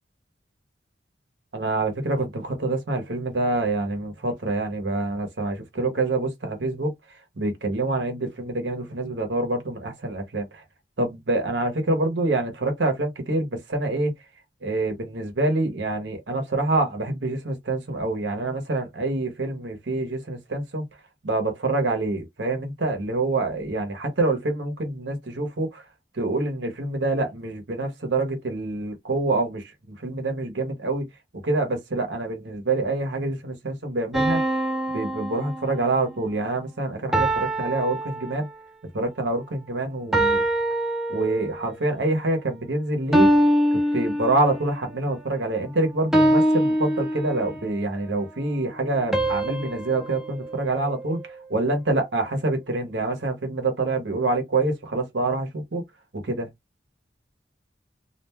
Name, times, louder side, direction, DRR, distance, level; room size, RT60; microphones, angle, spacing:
voice 1, 1.5-6.9 7.4-10.6 11.0-14.1 14.6-20.8 21.2-25.8 26.1-29.7 30.0-31.1 31.4-34.4 34.9-38.5 38.9-40.4 41.1-43.3 43.7-55.8 56.1-56.5, right 2 dB, 90° right, 0.9 m, -26 dB
sound 1, 34.1-36.1 37.1-38.8 40.1-41.7 43.1-44.8 46.1-47.7 49.1-51.5, right 1 dB, ahead, 0.4 m, -24 dB
2.4 x 2.2 x 3.3 m
head